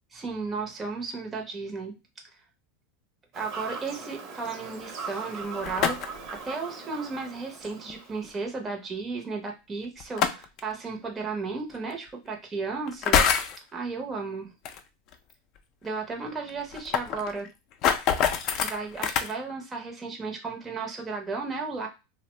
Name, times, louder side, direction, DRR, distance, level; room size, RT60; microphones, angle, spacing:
voice 1, 0.1-1.9 2.3-2.4 3.3-13.2 13.7-14.5 15.8-17.5 18.6-21.9, right 4 dB, 20° right, 1 dB, 0.6 m, -34 dB
Fowl / Bird vocalization bird call bird song, 3.3-8.3, right 4 dB, 50° right, 0.8 m, -40 dB
sound 1, 5.4-6.3 7.9-8.0 10.0-10.6 11.7-11.8 12.9-13.6 14.6-14.8 15.1-15.2 15.6-15.7 15.9-16.0 16.5-19.3, left 7 dB, 50° left, 0.4 m, -25 dB
2.6 x 2.0 x 3.1 m, 0.26 s
supercardioid pair, 120°, 0 cm